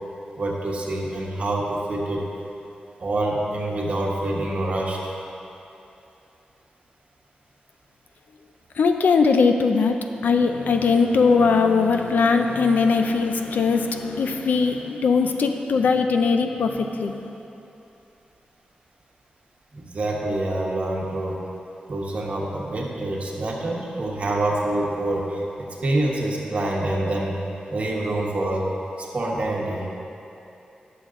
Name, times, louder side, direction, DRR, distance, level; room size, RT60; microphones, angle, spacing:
voice 1, 0.4-2.2 3.0-5.2 19.7-21.4 21.9-27.4 27.7-28.7 29.0-29.9, right 1 dB, 50° right, -3 dB, 1.3 m, -26 dB
voice 2, 8.8-17.3, left 4 dB, 85° left, 5 dB, 0.6 m, -20 dB
11.0 x 6.8 x 3.8 m, 2.8 s
wide cardioid pair, 130°, 3 cm